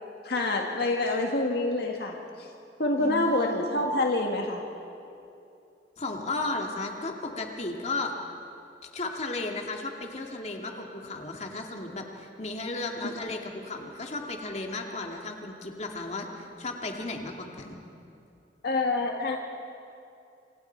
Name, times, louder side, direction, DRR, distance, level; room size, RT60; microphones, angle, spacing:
voice 1, 0.2-2.5 2.8-4.6 13.0-13.1 18.6-19.4, left 2 dB, 65° left, 1 dB, 1.7 m, -27 dB
voice 2, 3.0-3.7 6.0-8.1 8.9-17.8, left 2 dB, 40° left, 2 dB, 2.2 m, -34 dB
27.5 x 26.5 x 4.6 m, 2.7 s
head